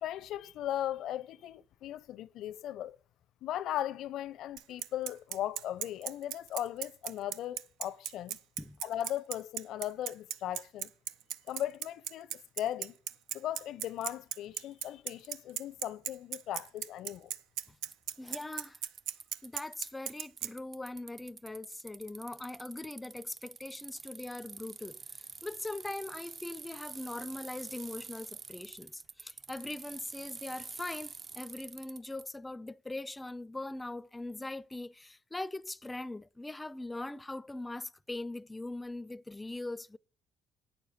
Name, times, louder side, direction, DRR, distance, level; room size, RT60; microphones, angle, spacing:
voice 1, 0.0-3.0 3.4-8.4 8.8-10.9 11.5-12.9 13.3-17.3, left 12 dB, 75° left, 0.5 m, -38 dB
Bicycle, 4.6-20.5, right 11 dB, 85° right, 0.5 m, -37 dB
Bicycle 2, 16.6-16.7 17.6-17.7 17.9-20.1 20.4-32.2, right 5 dB, 40° right, 0.6 m, -47 dB
voice 2, 18.2-18.8 19.4-40.0, left 2 dB, 15° left, 0.4 m, -41 dB
9.1 x 6.6 x 7.0 m
supercardioid pair, 80°, 0 cm